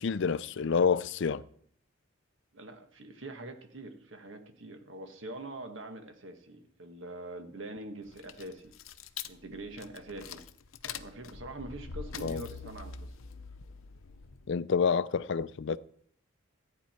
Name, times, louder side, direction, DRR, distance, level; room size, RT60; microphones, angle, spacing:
voice 1, 0.0-1.4 12.2-12.4 14.5-15.8, left 6 dB, 60° left, 0.4 m, -28 dB
voice 2, 2.5-8.7 9.2-10.4 10.8-13.1, right 2 dB, 65° right, 1.6 m, -44 dB
sound 1, 8.0-14.6, left 6 dB, 80° left, 0.7 m, -44 dB
14.5 x 9.6 x 4.5 m
head